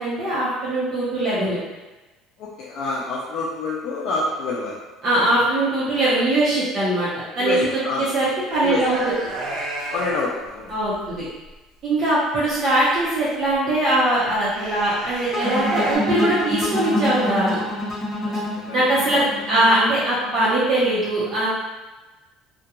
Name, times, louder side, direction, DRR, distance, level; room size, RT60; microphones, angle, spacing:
voice 1, 0.0-1.6 5.0-7.1 7.4-7.7 8.0-9.0 10.7-11.2 11.8-17.6 18.7-21.5, right 1 dB, 40° right, -10 dB, 0.7 m, -21 dB
voice 2, 2.4-4.8 7.4-8.1 8.6-8.9 9.9-10.7 18.2-18.9, left 3 dB, 60° left, -4 dB, 0.4 m, -27 dB
sound 1, 8.5-10.2 10.7-11.2 12.5-13.5 14.3-16.0, right 2 dB, 70° right, 0.8 m, -32 dB
sound 2, 15.3-20.4, left 1 dB, 30° left, 0.8 m, -26 dB
2.3 x 2.1 x 2.9 m, 1.2 s
cardioid pair, 130°, 0 cm